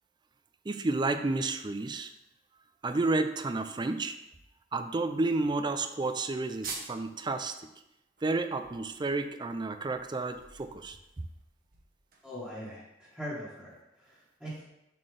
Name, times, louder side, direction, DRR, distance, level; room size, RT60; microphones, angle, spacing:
voice 1, 0.7-2.1 2.8-4.1 4.7-7.6 8.2-11.0, right 3 dB, 25° right, 9 dB, 0.4 m, -31 dB
sound 1, 6.6-7.1 7.5-7.6 8.0-12.6, right 4 dB, 55° right, 1.1 m, -47 dB
voice 2, 12.2-14.6, equal, 5° left, -11 dB, 1.6 m, -41 dB
7.2 x 4.3 x 3.3 m, 0.87 s
head